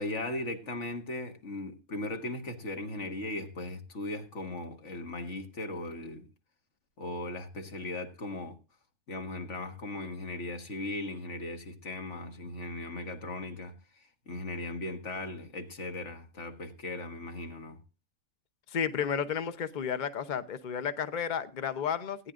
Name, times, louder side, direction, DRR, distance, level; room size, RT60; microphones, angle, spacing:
voice 1, 0.0-6.3 7.0-8.6 9.1-13.7 14.3-17.8, left 2 dB, 60° left, 1.9 m, -38 dB
voice 2, 18.7-22.3, left 7 dB, 40° left, 0.9 m, -32 dB
18.0 x 10.0 x 2.5 m
omnidirectional pair, 1.4 m